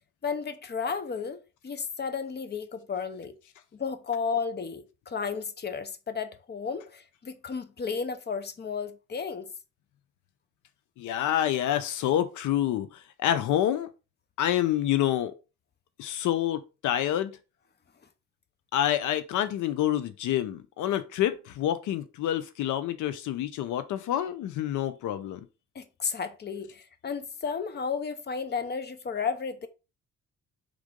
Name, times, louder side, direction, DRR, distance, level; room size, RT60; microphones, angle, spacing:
voice 1, 0.2-3.4 3.7-9.5 25.7-29.7, left 5 dB, 35° left, 0.9 m, -33 dB
voice 2, 11.0-13.9 14.4-15.3 16.0-17.3 18.7-25.4, left 11 dB, 80° left, 0.6 m, -27 dB
5.1 x 3.6 x 5.1 m
cardioid pair, 90°, 30 cm